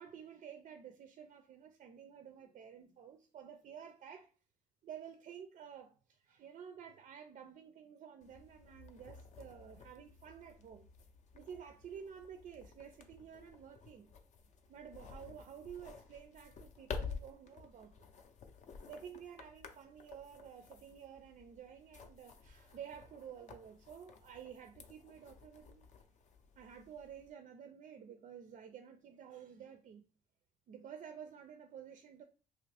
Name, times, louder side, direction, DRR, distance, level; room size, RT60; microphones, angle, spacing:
voice 1, 0.0-4.3 4.8-10.9 11.3-14.1 14.7-17.9 18.9-25.9 26.6-30.0 30.7-32.2, right 8 dB, 45° right, 0.4 m, -52 dB
sound 1, 8.2-27.3, left 5 dB, 45° left, 0.5 m, -52 dB
2.8 x 2.5 x 3.2 m
cardioid pair, 110°, 17 cm